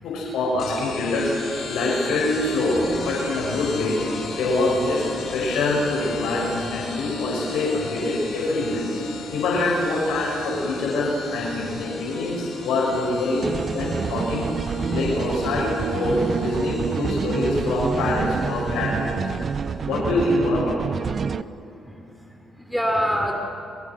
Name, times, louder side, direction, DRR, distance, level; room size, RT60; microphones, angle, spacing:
voice 1, 0.0-4.0 4.3-8.8 9.3-13.4 13.7-14.5 14.9-19.2 19.9-20.8, left 2 dB, 80° left, -3 dB, 6.7 m, -24 dB
sound 1, 0.6-19.7, left 4 dB, 55° left, 5.4 m, -37 dB
sound 2, 13.4-21.4, right 6 dB, 45° right, 0.6 m, -27 dB
voice 2, 21.2-23.4, equal, ahead, 2 dB, 3.7 m, -28 dB
29.5 x 23.5 x 6.4 m, 2.7 s
cardioid pair, 90°, 0 cm